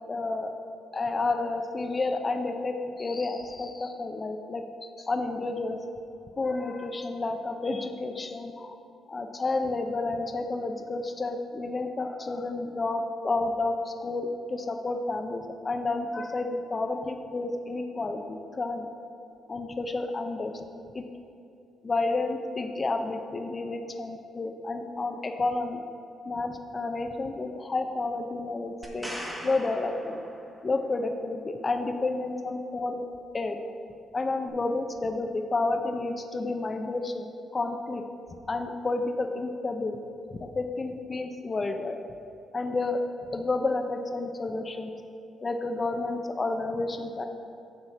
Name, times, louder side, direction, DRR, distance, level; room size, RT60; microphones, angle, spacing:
voice 1, 0.1-0.5 0.9-5.8 6.4-8.8 9.1-18.9 19.5-20.5 20.9-21.1 21.8-25.8 26.3-29.1 29.4-30.2 30.6-33.0 33.3-33.6 34.1-38.0 38.5-40.0 40.3-42.0 42.5-43.0 43.3-44.9 45.4-47.3, left 3 dB, 30° left, 6 dB, 0.6 m, -30 dB
sound 1, 28.8-30.8 34.5-34.6, equal, 5° right, 1.3 m, -40 dB
8.2 x 4.4 x 6.6 m, 2.7 s
cardioid pair, 90°, 0 cm